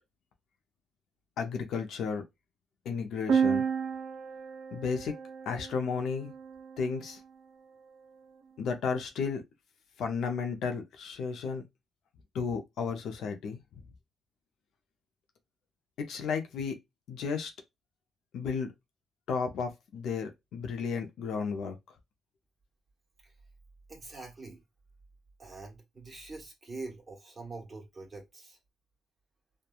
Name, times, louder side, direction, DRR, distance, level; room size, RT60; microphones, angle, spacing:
voice 1, 1.4-2.2 2.9-3.6 4.7-5.1 5.5-6.3 6.8-7.2 8.6-9.4 10.0-11.6 12.3-13.6 16.1-16.7 17.1-17.5 18.3-18.7 19.3-21.8, left 5 dB, 75° left, 0.5 m, -33 dB
sound 1, 3.3-7.0, right 6 dB, 80° right, 0.3 m, -32 dB
voice 2, 23.9-24.6 25.4-28.6, right 3 dB, 25° right, 1.1 m, -44 dB
2.9 x 2.2 x 2.3 m
cardioid pair, 90°, 0 cm